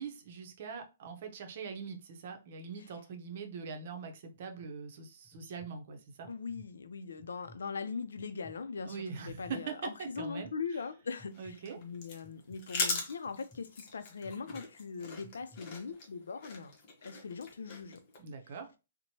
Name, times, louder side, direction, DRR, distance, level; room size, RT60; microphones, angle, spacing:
voice 1, 0.0-6.3 8.8-10.5 11.4-11.8 18.2-18.7, right 5 dB, 50° right, 0.7 m, -42 dB
sound 1, 4.3-4.7 5.2-5.7 6.2-6.7 7.2-7.6 8.2-8.6 9.2-9.6 10.2-10.5 11.2-11.6 12.2-12.6 13.3-13.6 14.2-14.6 15.2-15.6, equal, 5° left, 0.6 m, -56 dB
voice 2, 6.3-16.7 17.0-18.0, left 5 dB, 85° left, 0.4 m, -41 dB
sound 2, 11.3-18.2, left 3 dB, 40° left, 0.8 m, -40 dB
2.9 x 2.1 x 2.8 m
hypercardioid pair, 150°, 0 cm